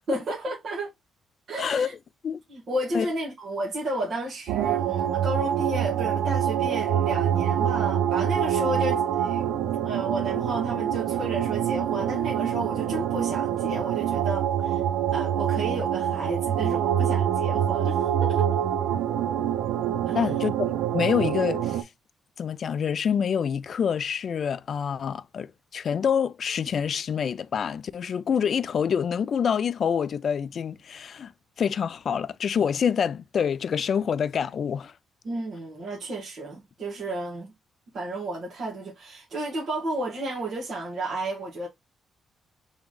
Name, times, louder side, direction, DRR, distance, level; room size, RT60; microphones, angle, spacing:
voice 1, 0.1-0.9 1.5-1.9 2.5-9.5 9.8-14.8 15.1-18.5 20.1-20.4 35.2-37.5 37.9-41.7, right 1 dB, 50° right, 1.5 m, -32 dB
voice 2, 1.6-1.9 2.2-2.4 2.9-3.1 20.1-21.9 22.4-31.3 31.6-34.9, left 7 dB, 50° left, 0.3 m, -26 dB
sound 1, 4.5-21.8, right 10 dB, 85° right, 0.5 m, -25 dB
3.5 x 3.1 x 3.6 m
cardioid pair, 130°, 0 cm